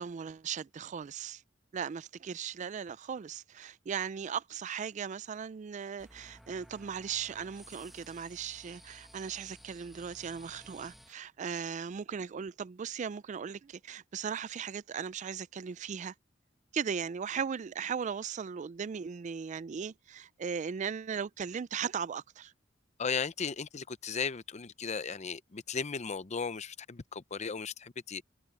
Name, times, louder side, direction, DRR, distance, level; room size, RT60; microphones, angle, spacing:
voice 1, 0.0-1.4 1.7-16.1 16.7-22.5, right 7 dB, 40° right, 0.3 m, -37 dB
sound 1, 6.0-11.1, equal, ahead, 1.2 m, -55 dB
voice 2, 23.0-28.2, left 5 dB, 35° left, 0.6 m, -36 dB
head